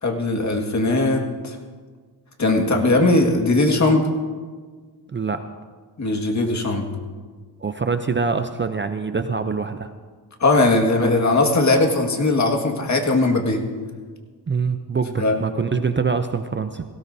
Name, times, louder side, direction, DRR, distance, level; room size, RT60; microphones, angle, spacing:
voice 1, 0.0-1.6 2.4-4.0 6.0-6.9 10.4-13.6 15.2-15.4, left 2 dB, 40° left, 2 dB, 1.9 m, -19 dB
voice 2, 5.1-5.4 7.6-9.9 14.5-16.8, right 5 dB, 30° right, 9 dB, 0.5 m, -24 dB
17.5 x 16.5 x 2.7 m, 1.5 s
cardioid pair, 95°, 42 cm